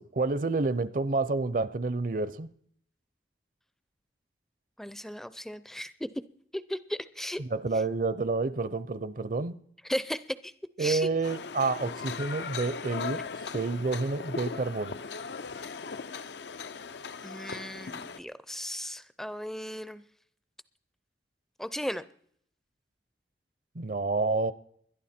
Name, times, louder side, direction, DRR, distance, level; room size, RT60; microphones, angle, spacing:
voice 1, 0.0-2.5 7.4-9.5 10.8-13.3 13.5-15.0 23.8-24.5, right 3 dB, 50° right, 0.6 m, -29 dB
voice 2, 4.8-6.1 6.5-7.4 9.9-10.5 10.8-11.1 17.2-20.0 21.6-22.0, equal, ahead, 0.5 m, -36 dB
sound 1, 11.2-18.2, left 5 dB, 75° left, 0.6 m, -38 dB
21.0 x 11.5 x 4.3 m
head